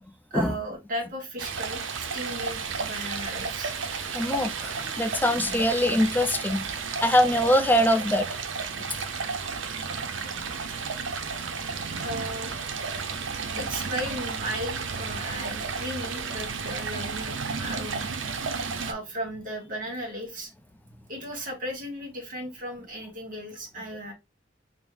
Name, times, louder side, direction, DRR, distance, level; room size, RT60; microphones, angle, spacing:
voice 1, 0.3-3.7 12.0-12.7 13.3-18.1 18.8-20.5 21.1-24.1, equal, 45° right, 1.1 m, -36 dB
Stream, 1.4-18.9, right 5 dB, 70° right, 0.5 m, -32 dB
voice 2, 4.1-6.6 7.0-8.3, left 1 dB, 10° left, 0.3 m, -23 dB
5.3 x 2.0 x 3.0 m
head